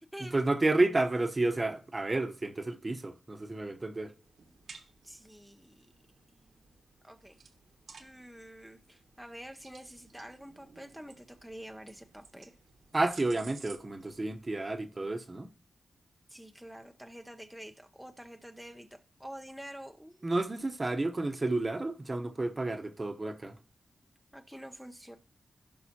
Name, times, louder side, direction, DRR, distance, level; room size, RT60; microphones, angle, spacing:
voice 1, 0.2-4.1 12.9-15.5 20.2-23.6, right 2 dB, 30° right, 0.9 m, -31 dB
sound 1, 4.2-14.8, right 5 dB, 80° right, 1.3 m, -56 dB
voice 2, 5.0-5.9 6.3-6.5 7.0-7.4 8.0-12.6 16.3-20.3 24.3-25.2, equal, ahead, 0.6 m, -48 dB
15.5 x 5.5 x 2.8 m
cardioid pair, 75°, 0 cm